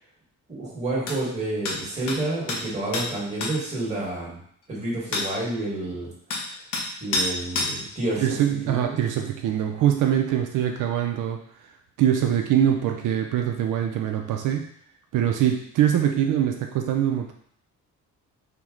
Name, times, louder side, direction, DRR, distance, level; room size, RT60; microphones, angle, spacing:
voice 1, 0.5-4.4 4.7-6.1 7.0-8.2 8.6-8.9, right 2 dB, 20° right, -6 dB, 1.4 m, -29 dB
sound 1, 1.1-1.2 1.7-1.8 2.1-2.2 2.5-2.6 2.9-3.1 3.4-3.5 5.1-5.3 6.3-6.4 6.7-6.9 7.1-7.3 7.6-7.7, left 3 dB, 85° left, 0.8 m, -26 dB
voice 2, 8.2-11.4 12.0-14.7 15.1-17.3, right 10 dB, 85° right, 3 dB, 0.5 m, -23 dB
4.5 x 2.1 x 3.6 m, 0.65 s
cardioid pair, 150°, 30 cm